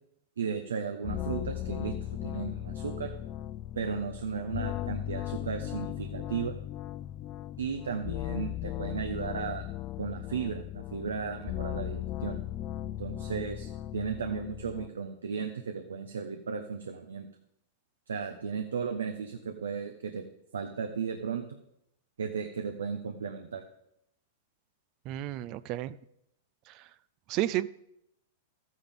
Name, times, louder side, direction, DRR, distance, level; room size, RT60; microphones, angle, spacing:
voice 1, 0.4-3.1 3.7-6.5 7.6-9.6 10.0-12.4 13.0-17.3 18.1-20.2 20.5-21.4 22.2-23.6, right 6 dB, 90° right, 6 dB, 0.8 m, -35 dB
sound 1, 1.0-14.9, left 13 dB, 40° left, 0.3 m, -37 dB
voice 2, 25.1-26.0 26.7-26.8 27.3-27.7, right 14 dB, 45° right, 16 dB, 0.4 m, -32 dB
13.0 x 9.4 x 3.7 m, 0.79 s
hypercardioid pair, 115°, 0 cm